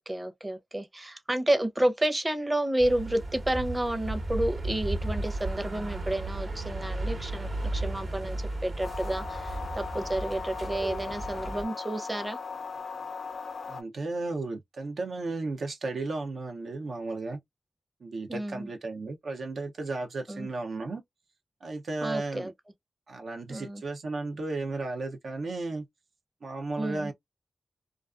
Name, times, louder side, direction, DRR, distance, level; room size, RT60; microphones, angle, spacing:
voice 1, 0.0-12.4 18.3-18.7 20.3-20.5 22.0-22.5 23.5-23.8 26.8-27.1, right 1 dB, 20° right, 0.7 m, -30 dB
sound 1, 2.8-11.6, right 2 dB, 55° right, 1.0 m, -34 dB
sound 2, 8.8-13.8, left 5 dB, 70° left, 0.4 m, -38 dB
voice 2, 13.7-17.4 18.0-21.0 21.6-22.5 23.1-25.9 26.4-27.1, right 3 dB, 75° right, 0.5 m, -34 dB
2.4 x 2.3 x 2.3 m
cardioid pair, 50°, 0 cm